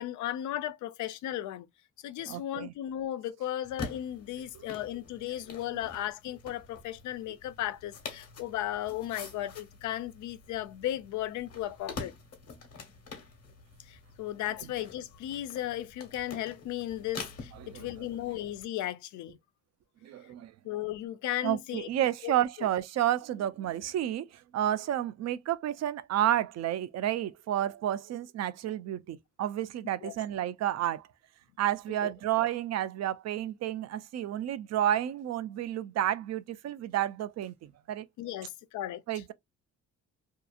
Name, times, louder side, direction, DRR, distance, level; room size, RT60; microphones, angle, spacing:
voice 1, 0.0-1.7 2.0-12.1 13.9-19.4 20.6-21.9 22.2-22.3 30.0-30.2 32.0-32.1 38.2-39.0, left 13 dB, 75° left, 0.5 m, -35 dB
voice 2, 2.2-2.7 4.5-4.7 17.5-18.1 20.0-20.5 21.4-31.1 31.6-38.1 39.1-39.3, right 12 dB, 60° right, 0.4 m, -31 dB
sound 1, 3.6-18.6, left 4 dB, 50° left, 1.1 m, -46 dB
2.8 x 2.3 x 2.3 m
cardioid pair, 90°, 30 cm